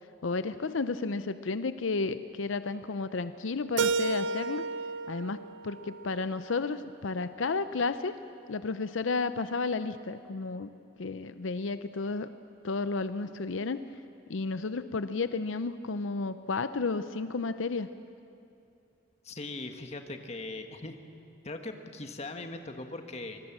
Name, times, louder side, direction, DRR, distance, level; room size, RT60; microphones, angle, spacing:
voice 1, 0.2-4.6 5.1-8.1 8.5-10.7 11.0-12.3 12.6-13.8 14.3-17.9, left 4 dB, 85° left, 12 dB, 0.7 m, -32 dB
Keyboard (musical), 3.8-6.7, right 4 dB, 70° right, 0.6 m, -32 dB
voice 2, 19.2-21.0 21.4-23.4, left 2 dB, 35° left, 6 dB, 1.6 m, -40 dB
25.0 x 21.0 x 7.4 m, 2.7 s
head